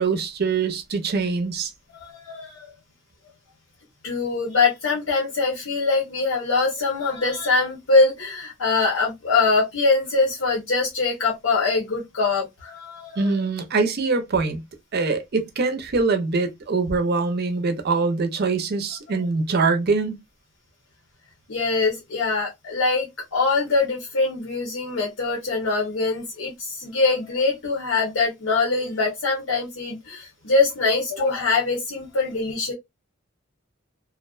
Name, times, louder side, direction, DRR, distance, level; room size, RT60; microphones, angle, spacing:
voice 1, 0.0-1.7 13.2-14.6 14.9-20.2, right 4 dB, 50° right, 0.5 m, -23 dB
voice 2, 2.0-2.7 4.0-13.3 19.1-19.2 21.5-32.7, left 3 dB, 80° left, 0.8 m, -23 dB
2.4 x 2.2 x 2.3 m
head